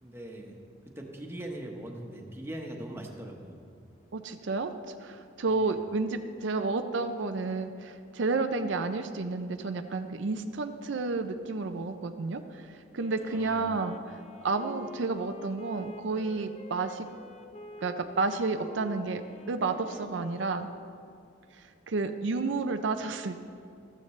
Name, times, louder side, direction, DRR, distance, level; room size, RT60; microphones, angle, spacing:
voice 1, 0.0-0.5 1.0-3.6 5.6-5.7 13.2-13.8, right 1 dB, 15° right, 1 dB, 1.1 m, -41 dB
voice 2, 4.1-17.1 17.8-19.2 19.5-20.7 21.6-23.4, right 3 dB, 70° right, 7 dB, 0.5 m, -31 dB
Wind instrument woodwind instrument, 12.9-21.1, left 2 dB, 35° left, 0.6 m, -48 dB
14.0 x 14.0 x 3.2 m, 2.3 s
head